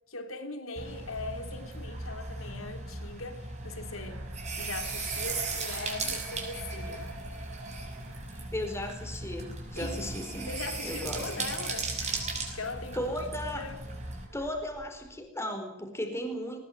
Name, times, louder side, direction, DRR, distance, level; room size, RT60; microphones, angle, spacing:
voice 1, 0.1-4.3 4.6-7.1 9.7-10.1 10.4-13.2 13.5-13.8, left 3 dB, 85° left, 3.4 m, -40 dB
sound 1, 0.7-15.2, right 1 dB, 90° right, 6.3 m, -50 dB
sound 2, 0.8-14.3, right 3 dB, 35° right, 6.1 m, -37 dB
voice 2, 8.3-10.5 10.8-11.3 12.9-13.7 14.3-16.6, equal, 15° left, 4.6 m, -36 dB
21.0 x 20.0 x 9.4 m
head